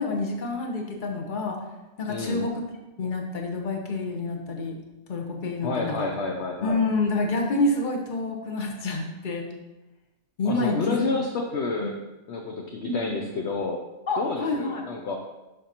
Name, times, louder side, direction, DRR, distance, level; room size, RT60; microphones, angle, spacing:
voice 1, 0.0-1.6 2.0-2.5 3.0-4.8 5.1-6.1 6.6-9.5 10.4-11.0 12.8-13.2 14.1-14.8, left 2 dB, 40° left, 2 dB, 1.1 m, -28 dB
voice 2, 2.1-2.5 5.6-6.8 10.4-12.0 12.3-13.8 14.2-15.2, left 3 dB, 60° left, 1 dB, 0.9 m, -29 dB
11.5 x 5.2 x 2.9 m, 1.1 s
omnidirectional pair, 1.4 m